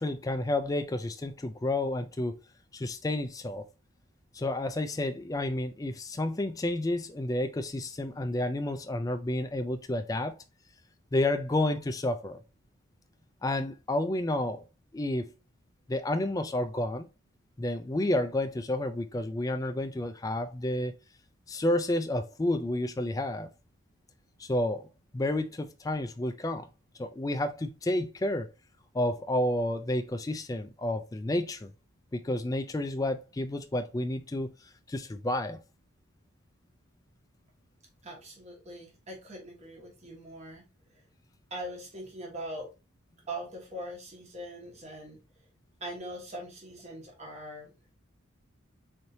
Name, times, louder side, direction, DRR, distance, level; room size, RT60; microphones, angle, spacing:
voice 1, 0.0-2.4 2.7-3.6 4.3-10.4 11.1-12.4 13.4-14.6 14.9-15.3 15.9-17.1 17.6-20.9 21.5-23.5 24.4-24.9 25.1-26.7 27.0-28.5 28.9-31.7 32.1-34.5 34.9-35.6, left 1 dB, 15° left, 0.3 m, -30 dB
voice 2, 38.0-41.0 41.5-42.7 43.3-45.2 45.8-47.7, right 1 dB, 30° right, 1.2 m, -42 dB
4.1 x 3.1 x 2.6 m
head